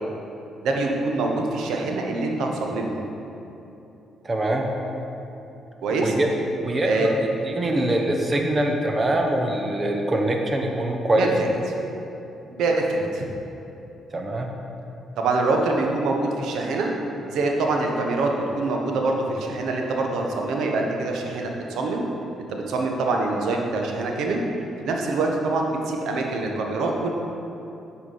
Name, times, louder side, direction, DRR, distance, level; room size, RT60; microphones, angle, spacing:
voice 1, 0.6-3.0 5.8-6.1 6.8-7.1 7.7-7.8 11.2-11.5 12.5-13.3 15.2-16.9 17.3-22.1 22.5-24.4 24.8-27.1, right 3 dB, 80° right, 1 dB, 1.1 m, -25 dB
voice 2, 4.2-4.7 5.9-6.3 6.6-7.1 7.4-11.3 14.1-14.5, right 1 dB, 30° right, 2 dB, 1.0 m, -23 dB
8.4 x 4.9 x 5.6 m, 2.9 s
cardioid pair, 90°, 0 cm